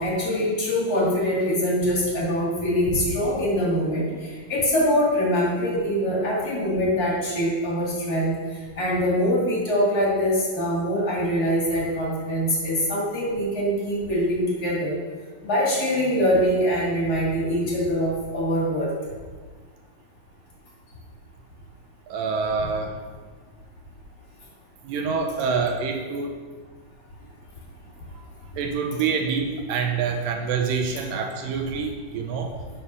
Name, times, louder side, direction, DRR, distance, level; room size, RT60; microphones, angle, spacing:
voice 1, 0.0-8.3 8.7-14.9 15.4-18.9, equal, 35° left, -6 dB, 1.6 m, -23 dB
voice 2, 22.1-23.0 24.8-26.4 28.1-28.3 28.6-32.6, right 5 dB, 80° right, 3 dB, 2.1 m, -26 dB
10.5 x 3.6 x 6.0 m, 1.5 s
omnidirectional pair, 4.5 m